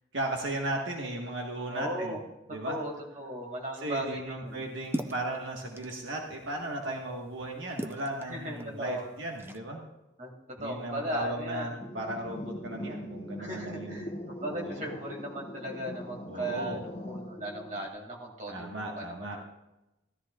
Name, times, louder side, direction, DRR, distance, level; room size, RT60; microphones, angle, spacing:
voice 1, 0.1-2.2 2.5-2.8 3.8-9.8 10.6-14.2 14.5-15.0 16.3-16.8 18.5-19.4, right 1 dB, 75° right, 0 dB, 1.5 m, -36 dB
voice 2, 1.7-2.2 2.6-4.7 8.3-9.0 10.2-11.8 13.4-19.5, right 1 dB, 40° right, 0 dB, 2.3 m, -37 dB
sound 1, 4.5-9.6, equal, 10° right, 0.5 m, -42 dB
sound 2, 11.8-17.9, equal, 30° left, 0.9 m, -41 dB
14.5 x 13.5 x 2.4 m, 0.93 s
head